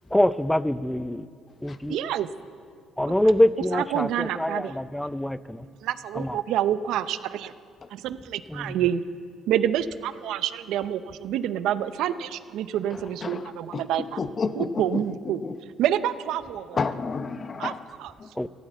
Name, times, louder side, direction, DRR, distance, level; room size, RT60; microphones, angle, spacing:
voice 1, 0.1-1.3 1.6-2.0 3.0-5.7 6.2-6.4 8.5-8.7 18.4-18.5, left 1 dB, 5° left, 16 dB, 0.5 m, -24 dB
voice 2, 1.9-2.3 3.7-4.7 5.8-7.5 7.9-9.0 9.5-14.2 14.5-15.4 15.8-16.8 17.6-17.7 18.0-18.1, right 10 dB, 80° right, 14 dB, 0.5 m, -27 dB
voice 3, 13.2-13.8 14.2-15.6 16.7-17.8 18.2-18.3, left 5 dB, 40° left, 12 dB, 0.8 m, -31 dB
13.5 x 11.5 x 7.7 m, 2.2 s
cardioid pair, 80°, 0 cm